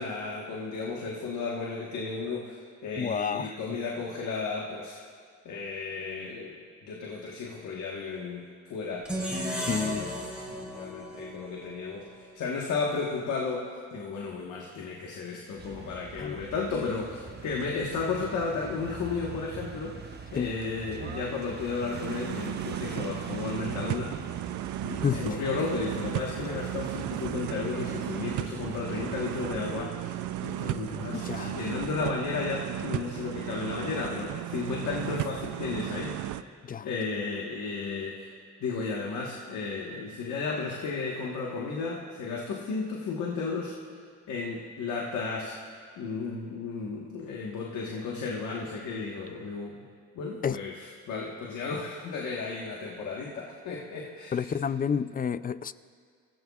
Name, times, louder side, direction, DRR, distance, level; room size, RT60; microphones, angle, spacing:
voice 1, 0.0-5.0 5.4-24.2 24.8-30.2 30.4-36.2 36.8-38.3 38.6-43.8 44.3-45.6 46.0-49.9 50.1-54.5, left 4 dB, 75° left, -2 dB, 1.5 m, -34 dB
voice 2, 3.0-3.6 9.7-10.1 16.2-16.4 20.4-20.5 25.0-25.4 31.1-31.6 36.6-36.9 50.4-50.6 54.3-55.7, left 7 dB, 30° left, 15 dB, 0.4 m, -30 dB
sound 1, 9.0-12.2, right 1 dB, 5° right, 3.5 m, -35 dB
sound 2, 15.6-29.9, right 5 dB, 35° right, 1.1 m, -43 dB
sound 3, 21.9-36.4, right 13 dB, 80° right, 0.5 m, -35 dB
23.5 x 15.0 x 2.4 m, 2.1 s
cardioid pair, 90°, 30 cm